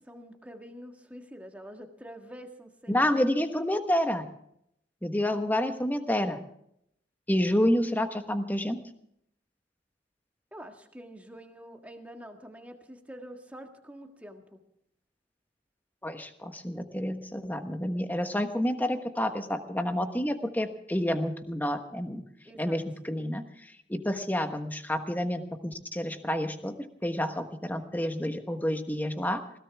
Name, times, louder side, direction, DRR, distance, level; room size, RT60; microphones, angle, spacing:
voice 1, 0.0-3.1 10.5-14.6 22.4-22.8, equal, 10° right, 4 dB, 1.7 m, -46 dB
voice 2, 2.9-4.3 5.0-6.4 7.3-8.8 16.0-22.2 22.6-23.4 23.9-29.6, left 1 dB, 10° left, 7 dB, 1.2 m, -29 dB
20.5 x 17.0 x 3.5 m, 0.73 s
head